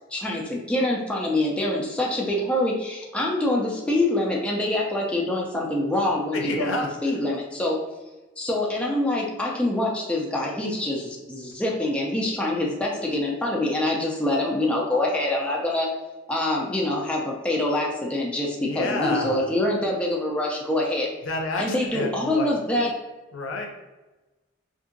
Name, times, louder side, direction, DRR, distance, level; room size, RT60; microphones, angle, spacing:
voice 1, 0.1-6.8 7.0-7.8 8.4-15.9 16.3-21.1 21.6-22.9, left 1 dB, 5° left, -3 dB, 0.3 m, -25 dB
voice 2, 6.3-7.2 18.6-19.4 21.2-22.5 23.3-23.7, left 2 dB, 70° left, 1 dB, 0.6 m, -29 dB
2.7 x 2.5 x 2.5 m, 1.1 s
head